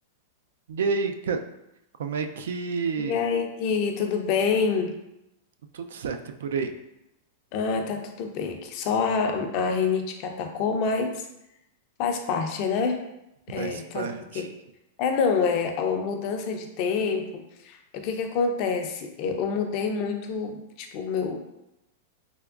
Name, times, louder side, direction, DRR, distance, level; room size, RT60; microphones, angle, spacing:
voice 1, 0.7-1.4 2.0-3.3 5.7-6.7 13.6-14.5, right 5 dB, 85° right, 7 dB, 0.3 m, -29 dB
voice 2, 3.0-4.9 7.5-11.2 12.0-13.0 13.5-14.1 14.3-14.5 15.0-21.4, left 5 dB, 45° left, 5 dB, 0.4 m, -27 dB
3.4 x 2.9 x 2.4 m, 0.88 s
supercardioid pair, 145°, 0 cm